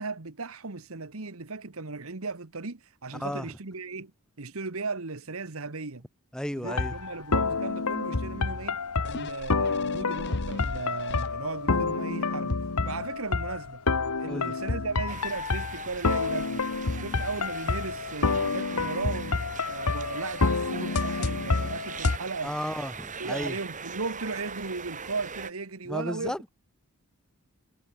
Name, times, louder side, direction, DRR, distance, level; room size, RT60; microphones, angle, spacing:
voice 1, 0.0-4.1 4.4-6.0 6.5-13.8 14.2-16.6 17.0-19.4 19.7-22.5 23.2-26.5, right 3 dB, 65° right, 1.4 m, -36 dB
voice 2, 3.1-3.5 6.3-6.9 14.3-14.5 22.4-23.5 25.8-26.5, equal, 5° left, 1.1 m, -33 dB
sound 1, 6.7-22.2, left 4 dB, 90° left, 1.3 m, -28 dB
sound 2, 9.0-11.7 12.2-12.3, left 3 dB, 50° left, 0.9 m, -41 dB
sound 3, 15.1-25.5, right 5 dB, 35° right, 4.0 m, -41 dB
head